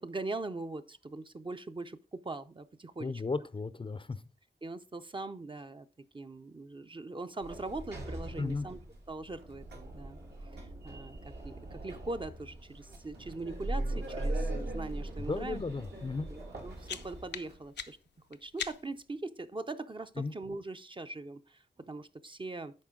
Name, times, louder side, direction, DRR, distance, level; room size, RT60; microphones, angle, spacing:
voice 1, 0.0-3.2 4.6-5.9 6.1-8.8 9.1-15.6 16.3-18.0 18.3-22.7, right 2 dB, 30° right, 9 dB, 0.5 m, -41 dB
voice 2, 3.0-4.2 8.4-8.7 15.3-16.3 20.2-20.3, left 3 dB, 30° left, 15 dB, 0.4 m, -35 dB
Sliding door, 7.4-17.6, right 1 dB, 75° right, 2.4 m, -40 dB
sound 1, 16.4-19.1, left 7 dB, 90° left, 0.6 m, -43 dB
10.5 x 4.4 x 3.7 m, 0.32 s
wide cardioid pair, 85°, 17 cm